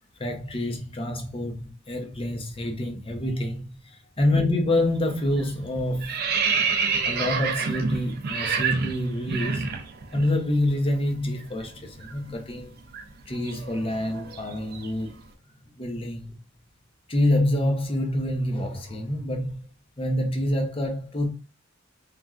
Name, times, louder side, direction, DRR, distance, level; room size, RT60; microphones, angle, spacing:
voice 1, 0.2-6.1 7.0-9.8 10.1-12.7 13.3-15.1 15.8-16.2 17.1-19.6 20.0-21.3, left 1 dB, 30° left, 0.6 m, -27 dB
sound 1, 4.8-5.1 5.4-10.3 10.6-10.8 11.1-15.1, right 5 dB, 50° right, 0.4 m, -29 dB
3.0 x 2.4 x 2.3 m
head